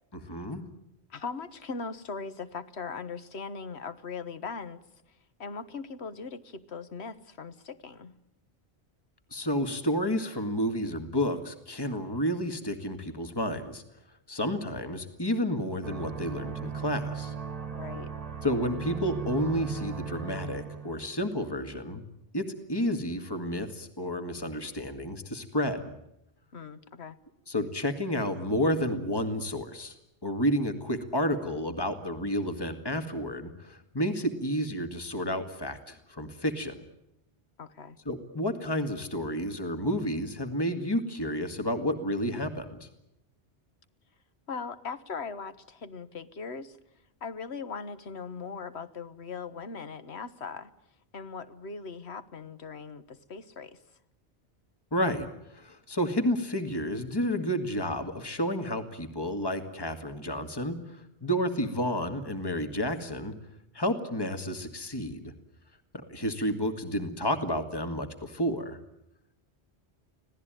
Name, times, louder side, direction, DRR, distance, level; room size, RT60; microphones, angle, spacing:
voice 1, 0.1-0.6 9.3-13.8 14.3-17.3 18.4-22.0 22.3-25.9 27.5-29.9 30.2-36.9 38.1-42.9 54.9-63.3 63.7-65.3 66.1-68.8, equal, 20° left, 8 dB, 2.0 m, -31 dB
voice 2, 1.1-4.8 5.4-8.2 17.7-18.1 26.5-27.2 37.6-38.0 44.5-46.8 47.2-50.7 51.1-53.8, left 5 dB, 75° left, 13 dB, 1.6 m, -39 dB
sound 1, 15.8-21.2, right 6 dB, 35° right, 1.3 m, -37 dB
26.0 x 17.5 x 9.1 m, 0.82 s
omnidirectional pair, 1.1 m